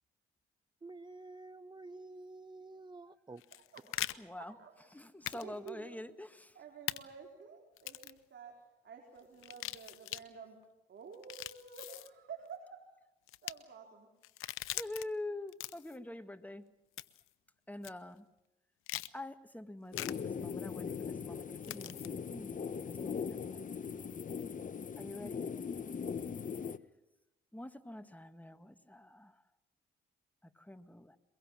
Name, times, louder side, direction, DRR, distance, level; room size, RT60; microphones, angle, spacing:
voice 1, 0.8-3.4, right 2 dB, 20° right, 15 dB, 0.7 m, -50 dB
sound 1, 3.4-4.1 5.3-5.4 5.7-5.8 6.9-7.0 7.8-8.2 9.4-10.2 11.1-12.1 13.3-13.5 14.2-15.0 15.5-16.0 17.0-17.3 17.8-17.9 18.9-19.1 19.9-20.1 21.6-22.1, left 16 dB, 90° left, 0.8 m, -41 dB
voice 2, 3.5-4.1 4.4-4.9 5.3-6.0 6.5-8.6 8.8-10.6 10.9-12.9 13.4-14.1, right 6 dB, 60° right, 1 dB, 4.5 m, -51 dB
voice 3, 4.2-4.5 4.9-6.5 14.7-16.7 17.7-18.3 19.1-23.9 25.0-25.6 27.5-29.3 30.6-31.2, left 1 dB, 5° left, 9 dB, 1.8 m, -46 dB
sound 2, 19.9-26.8, left 6 dB, 40° left, 1.0 m, -40 dB
23.0 x 22.0 x 7.4 m, 0.93 s
cardioid pair, 70°, 21 cm